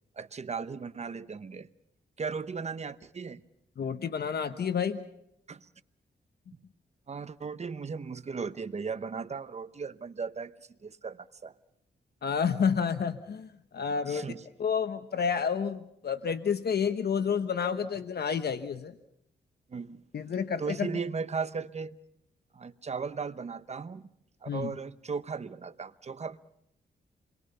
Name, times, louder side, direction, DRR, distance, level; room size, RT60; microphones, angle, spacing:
voice 1, 0.2-1.7 2.2-3.4 5.5-5.7 7.1-10.5 10.8-11.5 14.1-14.4 19.7-20.0 20.6-22.0 22.5-24.0 24.4-26.4, right 5 dB, 35° right, 0.9 m, -36 dB
voice 2, 3.8-5.1 12.2-13.5 13.7-14.3 14.6-18.9 20.1-20.9 24.5-24.7, left 6 dB, 65° left, 1.1 m, -29 dB
27.5 x 22.5 x 5.5 m
wide cardioid pair, 100°, 18 cm